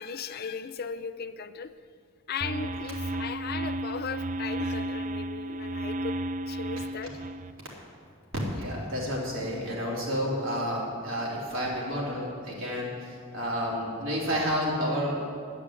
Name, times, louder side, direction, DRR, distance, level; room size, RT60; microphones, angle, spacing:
voice 1, 0.0-1.8 2.3-6.2 6.5-7.2, left 6 dB, 50° left, 11 dB, 0.5 m, -37 dB
sound 1, 2.4-7.5, right 1 dB, 40° right, 0.5 m, -33 dB
voice 2, 8.6-15.3, equal, 70° right, -4 dB, 3.6 m, -30 dB
10.5 x 10.0 x 8.3 m, 2.3 s
head